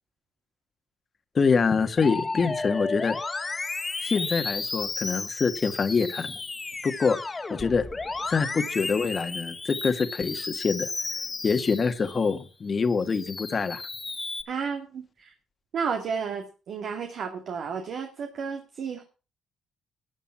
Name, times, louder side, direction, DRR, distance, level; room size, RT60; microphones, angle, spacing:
voice 1, 1.3-3.2 3.5-3.6 4.0-6.4 6.8-7.2 7.5-7.8 8.3-10.9 11.4-13.8, left 5 dB, 40° left, 9 dB, 1.6 m, -25 dB
Musical instrument, 2.0-12.4 12.9-14.4, left 3 dB, 25° left, 1.8 m, -33 dB
voice 2, 14.5-15.3 15.7-19.0, right 6 dB, 65° right, 4 dB, 2.2 m, -32 dB
13.5 x 8.3 x 5.8 m, 0.33 s
cardioid pair, 90°, 0 cm